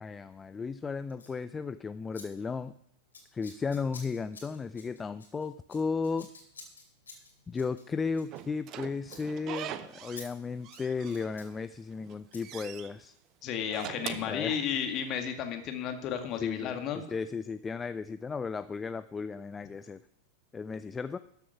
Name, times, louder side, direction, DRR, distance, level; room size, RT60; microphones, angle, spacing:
voice 1, 0.0-2.7 3.3-6.3 7.5-13.1 14.3-14.6 16.4-20.0 20.5-21.2, left 5 dB, 15° left, 13 dB, 0.4 m, -35 dB
Scissors, 1.1-1.4 2.1-2.2 2.5-2.8 3.1-8.8 9.0-9.2 9.5-9.7 10.1-10.3 10.6-11.5 12.3-12.4, left 4 dB, 70° left, 2.8 m, -51 dB
Slam / Squeak, 8.3-10.3 10.6-11.6 12.0-12.9 13.6-15.1, right 11 dB, 35° right, 0.7 m, -42 dB
voice 2, 13.4-17.0, left 8 dB, 35° left, 5 dB, 1.8 m, -33 dB
13.0 x 7.1 x 5.7 m, 0.74 s
figure-of-eight pair, 90°, 0 cm